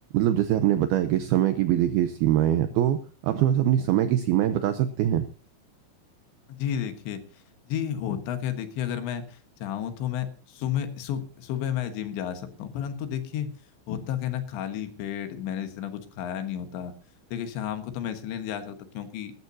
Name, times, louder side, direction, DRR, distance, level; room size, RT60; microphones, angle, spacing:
voice 1, 0.1-5.3, right 12 dB, 85° right, 10 dB, 2.2 m, -23 dB
voice 2, 6.5-13.5 13.9-16.9 17.3-19.3, left 10 dB, 75° left, 8 dB, 3.6 m, -32 dB
19.5 x 12.5 x 2.8 m, 0.37 s
omnidirectional pair, 5.4 m